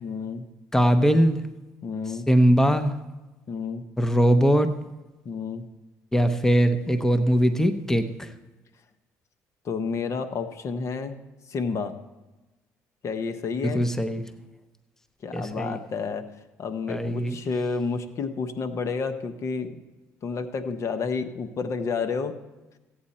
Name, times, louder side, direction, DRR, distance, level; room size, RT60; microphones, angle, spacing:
voice 1, 0.0-0.4 1.8-2.3 3.5-3.8 5.2-5.6 9.6-11.2 11.5-11.9 13.0-13.9 15.2-16.3 16.6-19.8 20.2-22.3, left 5 dB, 55° left, 9 dB, 1.0 m, -30 dB
voice 2, 0.7-1.4 2.3-2.9 4.0-4.7 6.1-8.3 13.6-14.2 15.3-15.8 16.9-17.4, equal, 5° left, 9 dB, 0.8 m, -21 dB
15.5 x 8.7 x 4.3 m, 1.1 s
cardioid pair, 85°, 6 cm